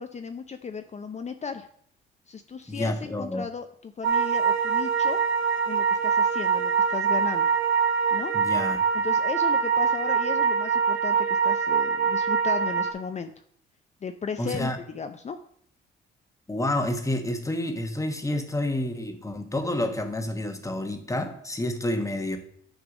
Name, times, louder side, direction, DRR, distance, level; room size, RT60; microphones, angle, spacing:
voice 1, 0.0-1.7 2.3-5.2 5.7-7.5 8.1-8.3 8.9-13.3 14.0-15.4, left 5 dB, 35° left, 8 dB, 0.6 m, -35 dB
voice 2, 2.7-3.4 8.3-8.8 14.4-14.8 16.5-22.4, left 1 dB, 15° left, 6 dB, 1.3 m, -29 dB
sound 1, 4.0-12.9, right 6 dB, 80° right, 1.0 m, -24 dB
9.7 x 3.3 x 6.2 m, 0.64 s
cardioid pair, 90°, 20 cm